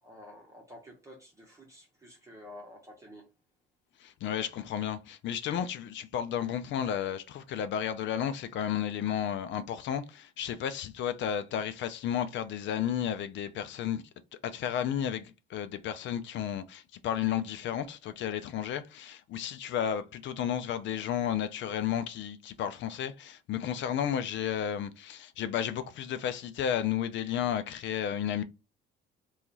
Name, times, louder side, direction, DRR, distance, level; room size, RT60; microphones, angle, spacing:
voice 1, 0.0-3.2, left 1 dB, 15° right, 1.0 m, -50 dB
voice 2, 4.0-14.0 14.4-28.4, left 9 dB, 65° left, 0.5 m, -32 dB
2.8 x 2.4 x 3.9 m
cardioid pair, 95°, 21 cm